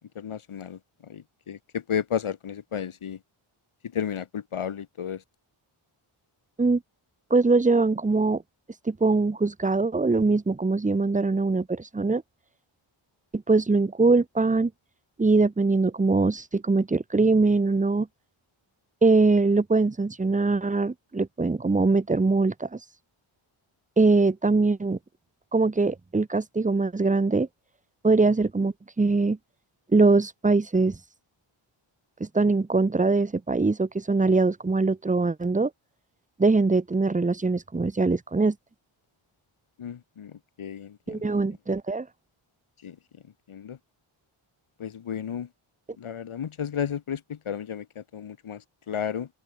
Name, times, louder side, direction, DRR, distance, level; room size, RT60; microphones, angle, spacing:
voice 1, 0.1-3.2 3.9-5.2 39.8-41.3 42.8-43.0 43.5-43.8 44.8-45.5 46.0-49.3, left 8 dB, 75° left, 2.7 m, -33 dB
voice 2, 7.3-8.4 8.9-12.2 13.3-14.7 15.2-18.1 19.0-22.8 24.0-25.0 25.5-27.5 28.0-29.4 29.9-31.0 32.2-35.7 36.4-38.5 41.1-42.1, right 3 dB, 15° right, 0.8 m, -22 dB
open air
wide cardioid pair, 125°, 50 cm